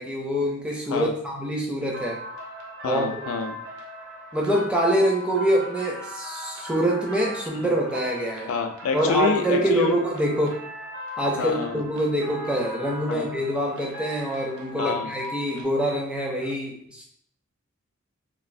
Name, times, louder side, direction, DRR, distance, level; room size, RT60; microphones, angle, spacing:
voice 1, 0.0-2.2 2.8-3.1 4.3-8.5 8.9-10.6 11.2-17.0, equal, 5° right, -2 dB, 0.4 m, -25 dB
sound 1, 1.9-15.6, equal, 60° right, 0.6 m, -38 dB
voice 2, 2.8-3.6 7.6-7.7 8.5-10.0 11.4-11.8 13.1-13.2 14.8-15.1, left 4 dB, 80° left, 5 dB, 0.3 m, -27 dB
3.1 x 2.6 x 2.5 m, 0.66 s
head